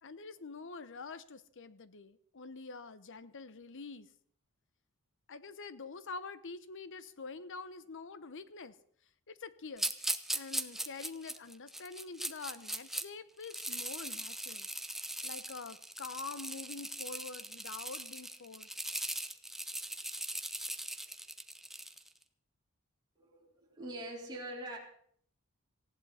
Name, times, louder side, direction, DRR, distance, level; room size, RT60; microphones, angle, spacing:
voice 1, 0.0-4.1 5.3-8.7 9.3-9.9 10.3-14.7 14.9-18.7, left 4 dB, 60° left, 15 dB, 0.9 m, -46 dB
sound 1, 9.8-13.0 13.4-22.1, right 1 dB, ahead, 0.8 m, -39 dB
voice 2, 23.2-24.8, right 1 dB, 20° right, -4 dB, 4.3 m, -43 dB
19.0 x 15.5 x 4.2 m, 0.62 s
head